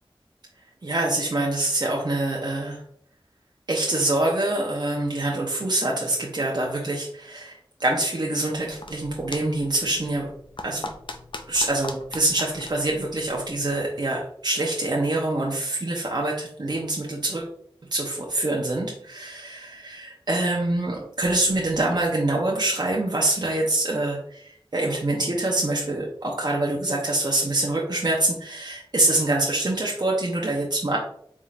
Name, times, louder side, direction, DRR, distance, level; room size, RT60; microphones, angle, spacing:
voice 1, 0.8-2.8 3.7-10.3 10.6-10.9 11.5-17.5 17.9-31.0, right 2 dB, 50° right, -2 dB, 0.7 m, -25 dB
sound 1, 8.6-13.8, left 2 dB, 60° left, 0.5 m, -41 dB
4.2 x 3.6 x 2.4 m, 0.66 s
wide cardioid pair, 45°, 9 cm